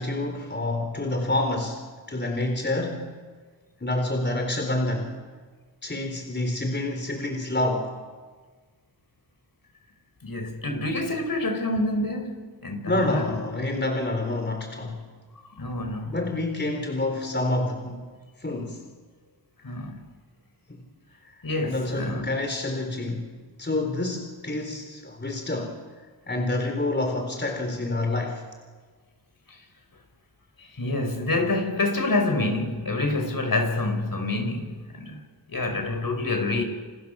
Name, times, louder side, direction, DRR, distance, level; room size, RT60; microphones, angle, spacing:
voice 1, 0.0-3.1 3.8-5.2 5.8-8.0 12.9-15.1 16.1-18.0 18.4-18.8 20.7-20.8 21.6-23.3 23.6-25.8 26.3-28.4, left 2 dB, 20° left, 4.2 m, -28 dB
voice 2, 10.2-13.4 15.6-16.2 19.6-20.0 21.4-22.3 29.5-29.6 30.6-35.2 35.5-36.6, left 2 dB, 45° left, 5.9 m, -27 dB
29.5 x 28.5 x 7.1 m
cardioid pair, 70°, 47 cm